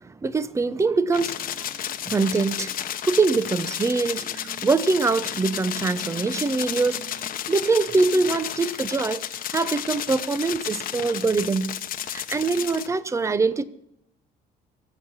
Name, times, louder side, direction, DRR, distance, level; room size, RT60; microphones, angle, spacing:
voice 1, 0.0-1.7 2.0-2.8 3.0-11.7 12.0-13.6, right 4 dB, 15° right, 0.8 m, -24 dB
sound 1, 1.1-12.9, left 11 dB, 55° left, 1.1 m, -32 dB
23.5 x 8.1 x 5.6 m
cardioid pair, 135°, 17 cm